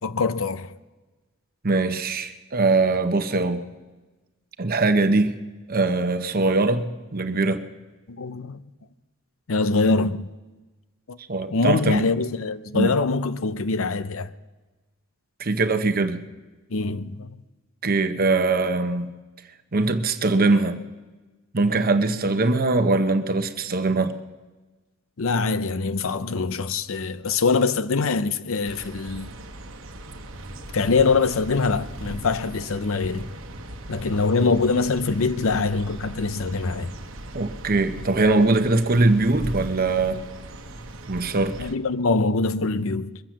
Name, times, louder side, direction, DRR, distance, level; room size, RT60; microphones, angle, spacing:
voice 1, 0.0-0.7 8.1-8.6 9.5-10.3 11.1-11.2 11.5-14.3 16.7-17.4 25.2-29.3 30.7-33.3 33.9-36.9 41.6-43.2, left 4 dB, 70° left, 0.6 m, -24 dB
voice 2, 1.6-3.7 4.6-5.3 5.7-7.6 11.3-12.1 12.7-12.9 15.4-16.2 17.8-19.1 19.7-20.8 21.5-24.1 37.3-40.2 41.1-41.5, right 3 dB, 45° right, 0.9 m, -22 dB
sound 1, 28.7-41.7, right 1 dB, 65° right, 1.2 m, -38 dB
22.5 x 7.6 x 7.4 m
head